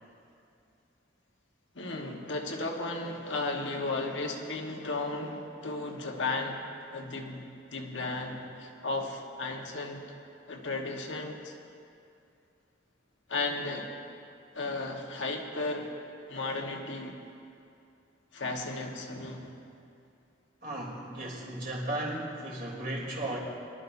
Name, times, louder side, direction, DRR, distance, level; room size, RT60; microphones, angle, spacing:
voice 1, 1.7-6.6 6.9-10.0 10.5-11.5 13.3-13.9 14.5-15.9 16.3-17.2 18.3-19.5, left 2 dB, 85° left, 1 dB, 1.4 m, -34 dB
voice 2, 20.6-23.4, right 1 dB, 50° right, -4 dB, 3.4 m, -35 dB
23.5 x 12.5 x 2.7 m, 2.5 s
head